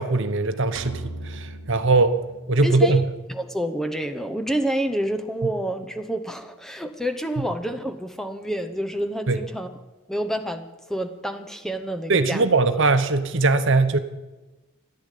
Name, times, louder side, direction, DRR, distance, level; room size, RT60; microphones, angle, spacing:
voice 1, 0.0-2.2 2.5-3.0 7.4-7.5 9.3-9.4 12.1-14.0, right 3 dB, 60° right, 10 dB, 1.0 m, -20 dB
sound 1, 0.8-3.0, right 2 dB, 85° right, 1.1 m, -38 dB
voice 2, 2.6-3.0 3.3-9.7 10.1-12.5 12.7-12.8, right 1 dB, ahead, 8 dB, 0.8 m, -28 dB
14.5 x 11.0 x 8.3 m, 1.1 s
head